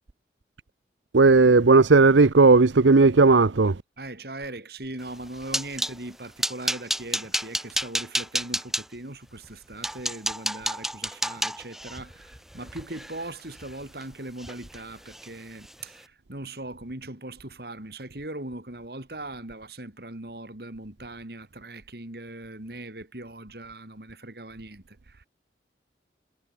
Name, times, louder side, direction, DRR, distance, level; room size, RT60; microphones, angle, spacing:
voice 1, 1.1-3.8, right 3 dB, 90° right, 0.8 m, -16 dB
voice 2, 4.0-25.3, right 2 dB, 60° right, 2.9 m, -40 dB
sound 1, 5.1-6.0 6.4-8.8 9.4-9.5 9.8-14.0 14.4-14.8 15.1-15.3 15.7-15.8, right 1 dB, ahead, 1.5 m, -30 dB
head